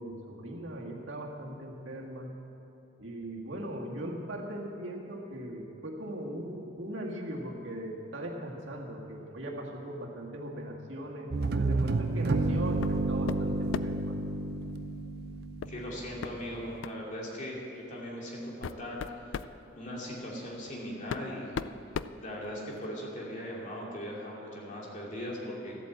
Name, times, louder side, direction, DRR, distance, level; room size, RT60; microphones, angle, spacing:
voice 1, 0.0-2.3 3.0-14.1, right 1 dB, 80° right, -2 dB, 1.9 m, -39 dB
sound 1, 11.3-16.1, right 2 dB, 55° right, 0.6 m, -30 dB
sound 2, 12.8-13.0 13.3-14.1 15.6-15.8 16.2-16.3 16.8-17.0 17.9-18.0 18.4-19.6 20.6-20.7 21.1-22.9, left 6 dB, 90° left, 0.4 m, -37 dB
voice 2, 15.7-19.4 19.8-21.6 22.2-25.8, equal, 40° left, -4 dB, 2.6 m, -39 dB
13.5 x 8.4 x 7.7 m, 2.8 s
head